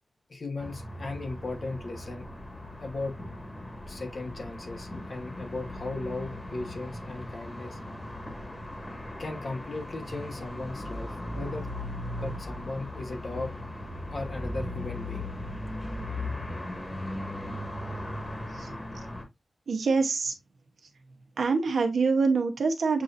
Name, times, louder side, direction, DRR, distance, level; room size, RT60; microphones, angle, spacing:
voice 1, 0.3-2.3 2.8-3.2 3.9-7.8 9.2-11.7 12.2-13.5 14.1-15.3, left 2 dB, 60° left, 1.1 m, -37 dB
sound 1, 0.6-19.2, left 1 dB, 30° left, 1.6 m, -38 dB
voice 2, 19.7-20.3 21.4-23.0, right 4 dB, 85° right, 0.9 m, -25 dB
7.3 x 2.6 x 2.5 m
wide cardioid pair, 70°, 0 cm